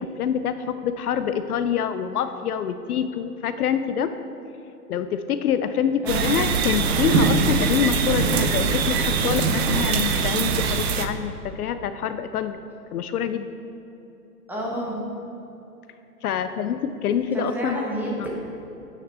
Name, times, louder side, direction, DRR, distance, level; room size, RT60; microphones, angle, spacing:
voice 1, 0.0-4.1 4.9-12.6 12.9-13.5 16.2-17.8 18.2-18.3, left 8 dB, 70° left, 10 dB, 0.5 m, -26 dB
voice 2, 6.0-6.4 14.5-15.0 17.3-18.3, right 1 dB, 5° right, -4 dB, 1.1 m, -29 dB
sound 1, 6.1-11.1, right 5 dB, 40° right, 0.6 m, -22 dB
9.0 x 5.8 x 4.3 m, 2.9 s
hypercardioid pair, 130°, 48 cm